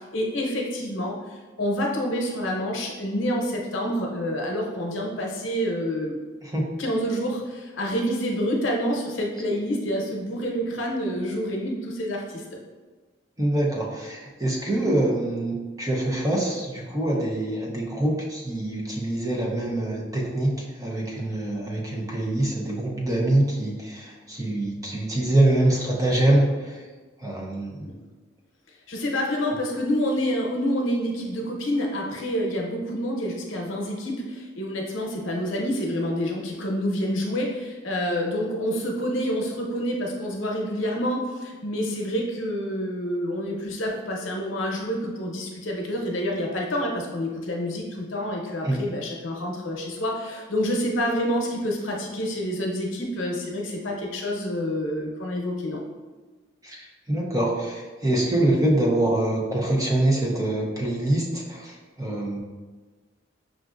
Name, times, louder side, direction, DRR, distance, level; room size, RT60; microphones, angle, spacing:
voice 1, 0.1-6.2 6.8-12.4 27.8-27.9 28.9-55.8, equal, 85° left, -1 dB, 0.8 m, -28 dB
voice 2, 13.4-26.8 27.2-27.9 48.6-48.8 56.6-62.4, right 1 dB, 20° right, -2 dB, 0.6 m, -25 dB
5.9 x 2.5 x 2.4 m, 1.3 s
head